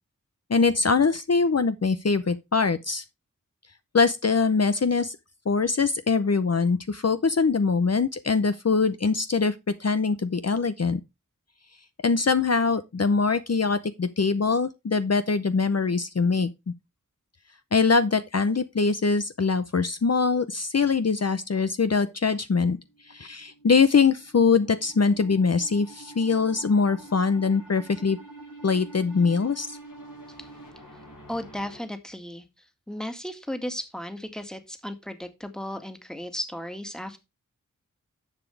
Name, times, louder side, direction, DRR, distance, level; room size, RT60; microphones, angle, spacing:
voice 1, 0.5-3.0 3.9-5.2 5.5-9.5 9.8-11.0 12.0-16.5 17.7-22.8 23.0-28.2 28.6-29.8, left 4 dB, 50° left, 0.7 m, -23 dB
sound 1, 22.8-31.8, right 2 dB, 80° left, 6.4 m, -47 dB
voice 2, 31.3-32.4 32.9-37.2, left 1 dB, ahead, 1.8 m, -35 dB
10.5 x 7.1 x 3.3 m
wide cardioid pair, 55°, 32 cm